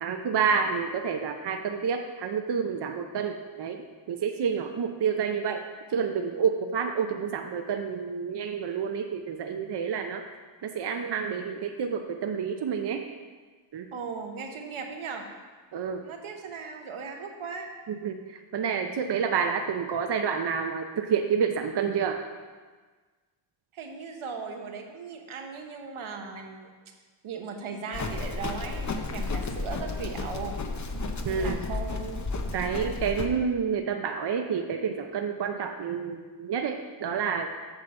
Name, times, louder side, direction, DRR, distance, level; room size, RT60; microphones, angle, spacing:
voice 1, 0.0-3.8 4.1-5.6 5.9-10.2 10.6-13.0 13.7-13.9 15.7-16.0 17.9-18.2 18.5-22.2 31.2-31.6 32.5-37.5, right 6 dB, 55° right, 5 dB, 0.7 m, -29 dB
voice 2, 13.9-15.3 16.0-17.7 23.7-26.7 27.2-30.6 31.3-32.3, right 5 dB, 85° right, 3 dB, 1.1 m, -38 dB
Livestock farm animals working animals, 27.9-33.3, left 3 dB, 35° left, 0.7 m, -32 dB
8.1 x 3.9 x 6.8 m, 1.4 s
cardioid pair, 75°, 48 cm